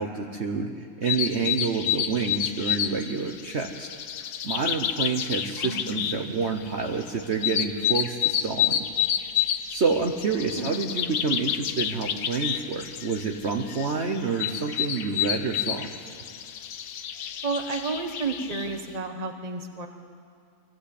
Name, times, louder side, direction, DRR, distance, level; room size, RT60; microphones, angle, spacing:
voice 1, 0.0-3.9 4.4-8.9 9.7-15.9, right 4 dB, 50° right, 3 dB, 1.2 m, -28 dB
sound 1, 1.0-18.8, left 10 dB, 85° left, 1.4 m, -29 dB
voice 2, 5.6-6.1 10.6-10.7 17.4-19.9, right 3 dB, 25° right, 5 dB, 1.3 m, -31 dB
23.0 x 15.5 x 8.5 m, 2.3 s
omnidirectional pair, 1.6 m